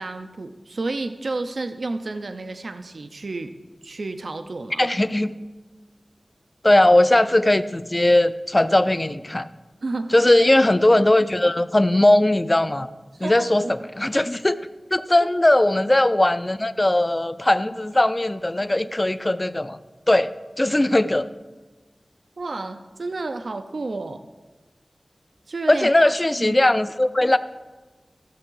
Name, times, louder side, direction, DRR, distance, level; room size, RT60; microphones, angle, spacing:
voice 1, 0.0-3.5 3.8-4.9 9.8-10.1 13.1-13.9 15.2-15.3 22.4-24.2 25.5-26.6, right 3 dB, 80° right, 8 dB, 0.5 m, -31 dB
voice 2, 4.8-5.3 6.6-9.5 10.1-12.9 13.2-14.6 14.9-19.8 20.1-21.3 25.7-27.4, left 1 dB, 30° left, 13 dB, 0.4 m, -19 dB
15.0 x 6.8 x 3.8 m, 1.2 s
wide cardioid pair, 55°, 0 cm